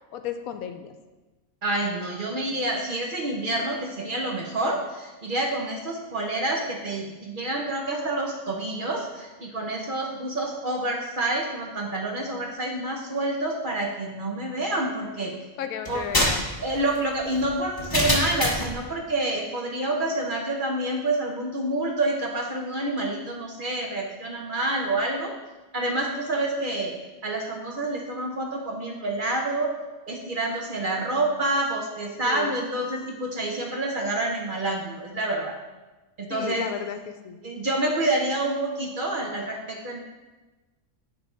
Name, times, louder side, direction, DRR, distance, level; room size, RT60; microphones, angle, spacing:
voice 1, 0.1-0.9 15.6-16.5 32.2-32.5 36.3-37.4, left 8 dB, 80° left, 8 dB, 1.0 m, -34 dB
voice 2, 1.6-15.4 15.9-16.0 16.6-25.3 25.7-27.0 27.2-29.7 30.1-35.5 36.2-36.7 37.4-40.0, right 2 dB, 45° right, 0 dB, 0.7 m, -28 dB
sound 1, 15.8-18.8, left 1 dB, 20° left, 0.8 m, -25 dB
9.6 x 3.4 x 4.4 m, 1.2 s
omnidirectional pair, 1.5 m